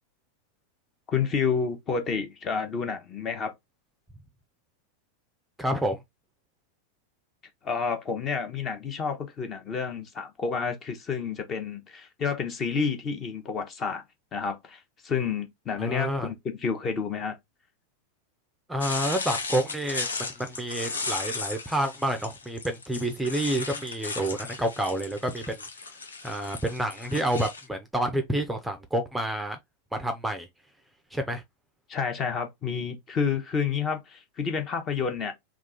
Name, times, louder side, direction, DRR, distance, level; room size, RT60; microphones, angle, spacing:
voice 1, 1.1-3.5 7.6-14.0 14.3-17.4 31.9-35.3, left 6 dB, 30° left, 0.9 m, -29 dB
voice 2, 5.6-6.0 15.8-16.3 18.7-25.6 26.2-29.6 29.9-30.5 31.1-31.4, right 1 dB, 5° right, 0.6 m, -29 dB
sound 1, 18.8-27.7, left 4 dB, 70° left, 0.7 m, -36 dB
3.7 x 2.4 x 3.6 m
figure-of-eight pair, 90°, 0 cm